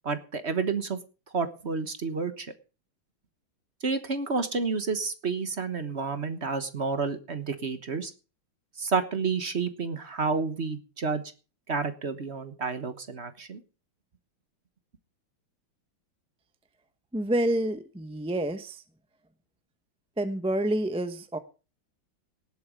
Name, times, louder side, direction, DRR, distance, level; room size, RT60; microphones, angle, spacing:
voice 1, 0.0-1.0 1.3-2.5 3.8-8.1 8.8-11.2 11.7-13.6, right 4 dB, 35° right, 10 dB, 1.3 m, -30 dB
voice 2, 17.1-18.8 20.2-21.4, right 1 dB, 5° right, 10 dB, 0.5 m, -28 dB
18.5 x 8.2 x 5.0 m, 0.34 s
omnidirectional pair, 2.2 m